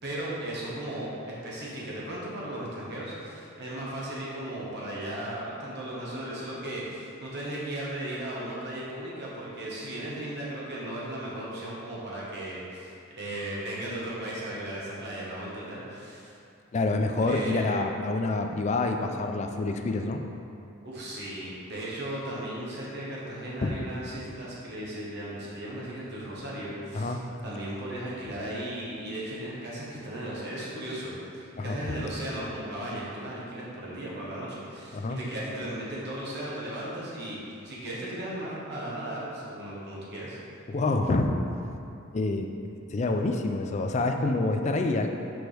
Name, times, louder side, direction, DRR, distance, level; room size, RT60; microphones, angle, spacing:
voice 1, 0.0-16.3 17.2-17.8 20.8-40.4, right 1 dB, 55° right, -6 dB, 1.3 m, -36 dB
voice 2, 16.7-20.2 23.6-23.8 26.9-27.2 31.6-31.8 34.9-35.2 40.7-41.4 42.1-42.5 42.9-45.1, left 2 dB, 35° left, 4 dB, 0.4 m, -27 dB
6.2 x 4.5 x 3.4 m, 2.6 s
head